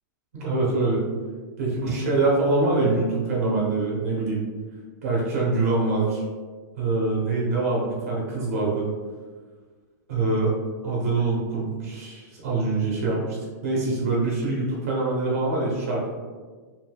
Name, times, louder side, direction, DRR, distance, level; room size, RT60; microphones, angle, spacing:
voice 1, 0.3-1.0 1.6-4.4 5.0-6.2 6.7-8.9 10.1-10.5 10.8-13.4 13.6-16.1, right 3 dB, 50° right, -4 dB, 0.7 m, -24 dB
3.3 x 2.6 x 2.2 m, 1.4 s
supercardioid pair, 180°, 11 cm